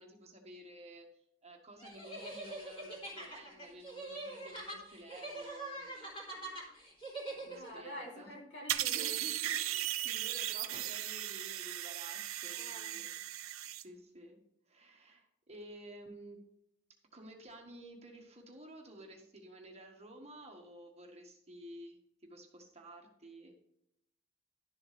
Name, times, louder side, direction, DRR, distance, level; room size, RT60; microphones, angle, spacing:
voice 1, 0.0-6.7 6.9-7.0 7.4-8.3 8.8-13.1 13.7-14.4 14.7-16.4 17.1-23.5, right 1 dB, 30° right, 2 dB, 1.5 m, -53 dB
sound 1, 1.8-7.8, right 2 dB, 25° left, 3.3 m, -44 dB
voice 2, 7.5-9.2 12.5-13.1, right 1 dB, 55° left, -1 dB, 2.8 m, -47 dB
sound 2, 8.7-13.8, right 13 dB, 85° right, 0.6 m, -37 dB
12.0 x 7.2 x 3.3 m, 0.78 s
head